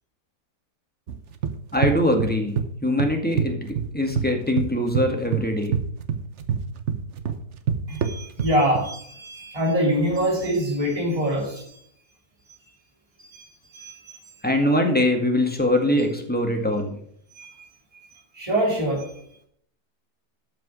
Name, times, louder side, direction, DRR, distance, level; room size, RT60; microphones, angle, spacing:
sound 1, 1.1-2.7 3.0-4.3 4.6-8.9, right 7 dB, 55° right, 1.1 m, -26 dB
voice 1, 1.7-5.7 14.4-17.0, left 1 dB, 5° left, 1.8 m, -23 dB
voice 2, 7.9-11.9 13.2-14.1 17.3-17.6 18.3-19.1, equal, 20° right, 2.8 m, -25 dB
12.5 x 6.1 x 6.2 m
omnidirectional pair, 1.7 m